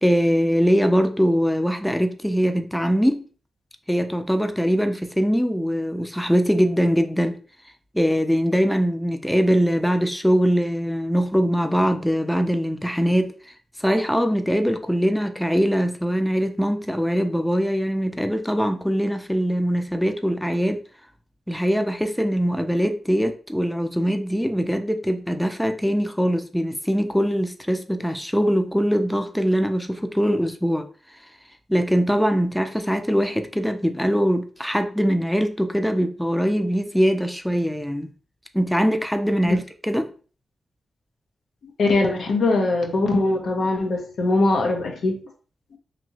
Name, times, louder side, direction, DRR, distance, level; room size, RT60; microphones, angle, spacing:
voice 1, 0.0-3.2 3.9-7.4 7.9-13.3 13.8-20.8 21.5-30.9 31.7-38.1 38.5-40.1, equal, 5° left, 0.4 m, -22 dB
voice 2, 41.8-45.2 45.7-45.8, left 2 dB, 75° left, 0.6 m, -21 dB
2.9 x 2.6 x 2.7 m
supercardioid pair, 45°, 0 cm